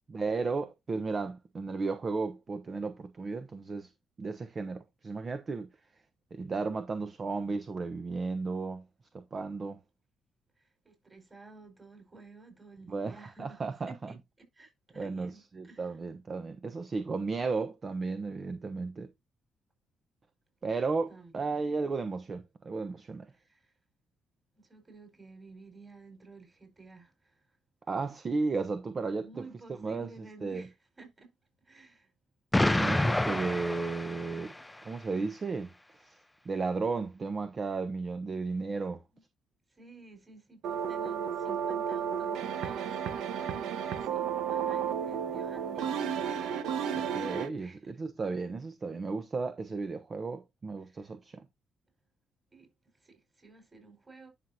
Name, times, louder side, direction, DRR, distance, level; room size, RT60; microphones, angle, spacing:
voice 1, 0.1-3.9 4.2-5.7 6.3-8.8 9.1-9.8 12.9-13.9 15.0-19.1 20.6-23.3 27.9-30.1 30.4-30.7 32.7-34.5 34.8-35.7 36.0-36.2 36.4-39.0 46.9-51.4, right 4 dB, 40° right, 0.9 m, -34 dB
voice 2, 10.6-13.6 13.9-14.2 14.5-16.0 21.1-21.8 23.3-23.7 24.5-27.5 29.2-31.3 31.6-32.1 38.5-38.6 39.1-39.2 39.7-47.0 47.6-48.0 50.8-51.1 52.5-52.7 53.0-54.3, right 3 dB, 25° right, 4.5 m, -53 dB
Explosion, 32.5-34.7, left 1 dB, 10° left, 0.3 m, -28 dB
sound 1, 40.6-47.5, right 8 dB, 85° right, 1.1 m, -32 dB
11.0 x 6.0 x 2.8 m
cardioid pair, 90°, 0 cm